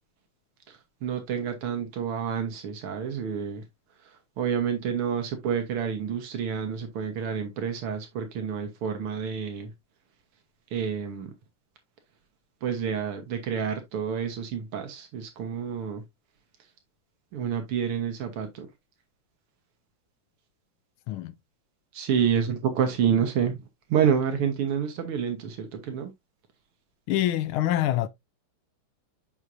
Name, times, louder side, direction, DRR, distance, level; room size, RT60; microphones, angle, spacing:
voice 1, 0.7-3.7 4.0-9.7 10.7-11.3 12.6-16.0 17.3-18.7 21.9-23.6 23.9-26.1, right 7 dB, 90° right, 2.1 m, -28 dB
voice 2, 27.1-28.1, left 13 dB, 80° left, 1.5 m, -25 dB
6.6 x 6.0 x 2.6 m
omnidirectional pair, 2.4 m